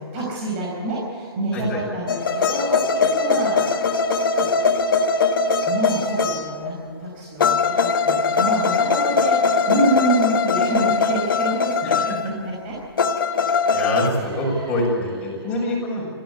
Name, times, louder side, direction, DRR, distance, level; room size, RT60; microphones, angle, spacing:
voice 1, 0.0-3.9 4.3-5.0 5.7-12.7 14.1-14.8 15.3-15.9, right 1 dB, 25° right, -4 dB, 5.4 m, -27 dB
sound 1, 2.1-6.7 7.4-12.3 13.0-14.1, left 4 dB, 55° left, 1.6 m, -21 dB
voice 2, 13.7-16.1, left 1 dB, 10° left, -5 dB, 6.5 m, -25 dB
22.5 x 15.0 x 8.2 m, 2.3 s
hypercardioid pair, 165°, 14 cm